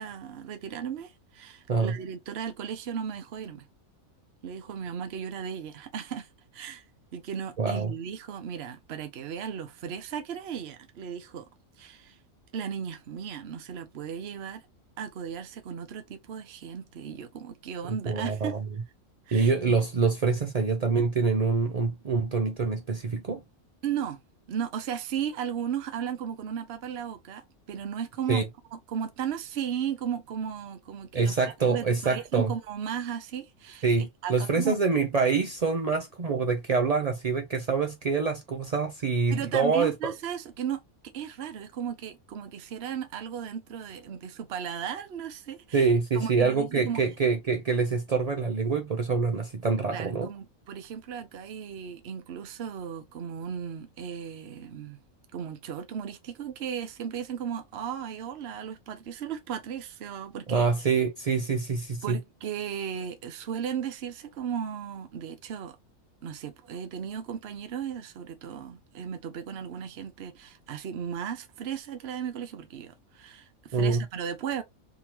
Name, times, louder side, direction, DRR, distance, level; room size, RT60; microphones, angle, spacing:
voice 1, 0.0-3.6 4.4-6.8 7.1-11.5 11.8-12.2 12.5-14.7 15.0-18.6 19.3-19.8 23.8-24.2 24.5-28.4 28.7-31.4 31.6-34.8 39.3-40.8 41.1-45.9 46.1-47.0 49.9-55.0 55.3-60.7 62.0-65.8 66.2-74.6, right 8 dB, 55° right, 0.9 m, -35 dB
voice 2, 7.6-7.9 17.9-18.6 19.3-23.4 28.3-28.4 31.1-32.5 33.8-40.1 45.7-50.3 60.5-62.2 73.7-74.0, right 4 dB, 80° right, 0.3 m, -26 dB
3.7 x 2.9 x 2.9 m
omnidirectional pair, 1.5 m